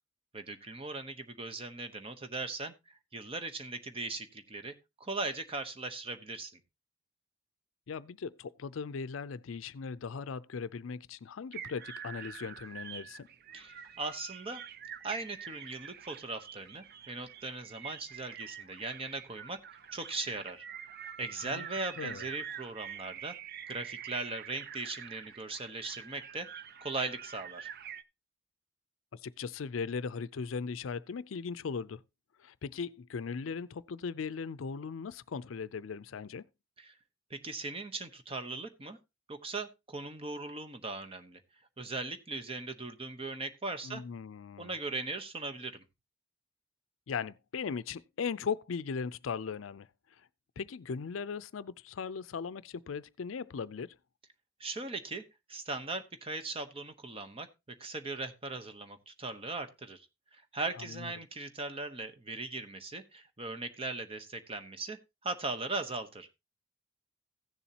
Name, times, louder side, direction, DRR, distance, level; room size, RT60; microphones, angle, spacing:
voice 1, 0.3-2.7 3.1-6.6 13.5-14.6 15.0-19.6 19.9-20.6 21.2-23.3 23.7-26.5 26.8-27.7 36.8-37.0 37.3-39.0 39.3-41.4 41.8-44.0 44.6-45.8 54.6-55.2 55.5-57.5 57.8-60.1 60.3-66.3, right 3 dB, 30° right, 0.9 m, -39 dB
voice 2, 7.9-13.3 21.4-21.7 22.0-22.3 29.1-32.0 32.4-36.5 43.8-44.7 47.1-49.9 50.6-54.0 60.8-61.1, left 5 dB, 80° left, 0.5 m, -38 dB
sound 1, 11.5-28.0, right 8 dB, 50° right, 0.5 m, -46 dB
16.0 x 7.1 x 2.8 m
head